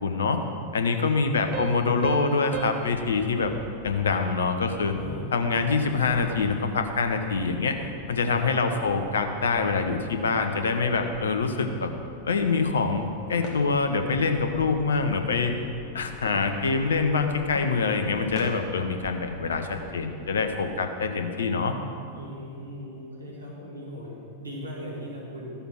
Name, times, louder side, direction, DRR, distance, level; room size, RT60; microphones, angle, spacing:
voice 1, 0.0-0.4 0.7-3.5 3.8-4.9 5.3-7.7 8.1-11.9 12.2-15.5 15.9-21.7, left 4 dB, 65° left, 6 dB, 0.9 m, -25 dB
voice 2, 0.9-1.5 3.3-3.4 4.9-5.3 8.1-9.0 22.1-25.5, equal, 80° right, -4 dB, 2.4 m, -39 dB
Piano, 1.5-4.8, right 10 dB, 40° right, 0.5 m, -38 dB
sound 1, 2.8-20.8, left 2 dB, 40° left, 1.3 m, -44 dB
13.0 x 7.0 x 5.9 m, 2.4 s
figure-of-eight pair, 90°, 0 cm